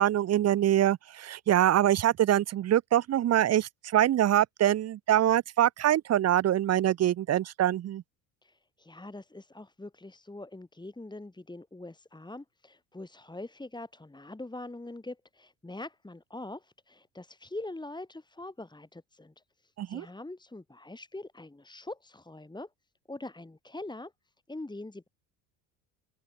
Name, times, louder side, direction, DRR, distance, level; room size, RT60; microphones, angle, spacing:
voice 1, 0.0-8.0 19.8-20.1, right 12 dB, 35° right, 0.8 m, -24 dB
voice 2, 8.4-22.7 23.1-24.1 24.5-25.1, left 2 dB, 10° left, 5.5 m, -43 dB
open air
supercardioid pair, 90°, 44 cm